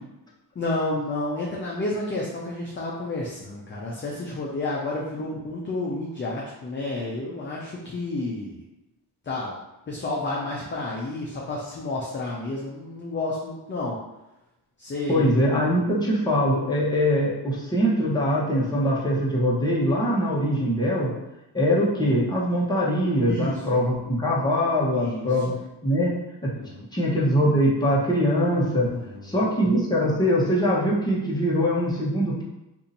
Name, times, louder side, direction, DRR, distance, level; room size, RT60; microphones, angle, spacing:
voice 1, 0.6-8.6 9.2-9.5 9.9-14.0 14.8-15.3 23.3-23.6 24.9-25.3 26.5-26.9 28.9-29.5, left 2 dB, 30° left, -4 dB, 0.5 m, -30 dB
voice 2, 15.1-21.1 21.5-25.5 25.8-26.1 26.4-26.5 26.9-28.9 29.2-32.4, equal, 10° left, -6 dB, 0.9 m, -22 dB
2.7 x 2.6 x 4.0 m, 0.94 s
cardioid pair, 115°, 41 cm